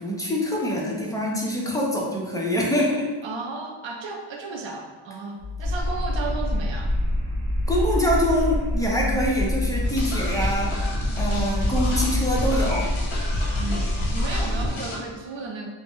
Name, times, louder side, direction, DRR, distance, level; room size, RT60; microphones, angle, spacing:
voice 1, 0.0-3.1 7.7-10.8 11.2-12.9, equal, 10° left, -3 dB, 0.4 m, -25 dB
voice 2, 3.2-7.0 13.6-15.7, right 3 dB, 65° right, 2 dB, 0.6 m, -34 dB
sound 1, 5.4-14.5, left 5 dB, 85° right, 0.9 m, -34 dB
sound 2, 5.6-14.7, equal, 50° right, 1.0 m, -26 dB
sound 3, 9.8-15.0, left 2 dB, 65° left, 0.7 m, -32 dB
2.5 x 2.0 x 3.5 m, 1.3 s
wide cardioid pair, 110°, 50 cm